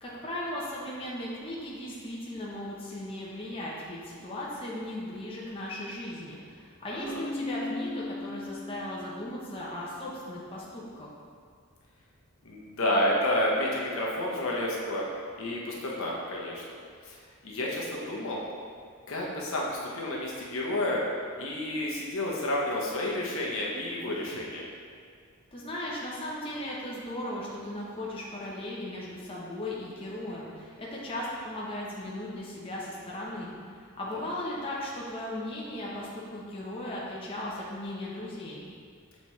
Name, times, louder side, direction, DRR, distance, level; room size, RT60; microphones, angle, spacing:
voice 1, 0.0-11.1 25.5-38.6, left 1 dB, 25° left, -6 dB, 0.8 m, -37 dB
voice 2, 6.9-7.2 12.4-15.1 15.4-16.6 17.0-18.4 19.1-21.0 21.4-24.7 34.1-34.2, left 1 dB, 65° left, -3 dB, 1.0 m, -30 dB
Keyboard (musical), 7.0-9.6, left 2 dB, 20° right, 0.7 m, -37 dB
7.2 x 4.2 x 3.1 m, 2.1 s
head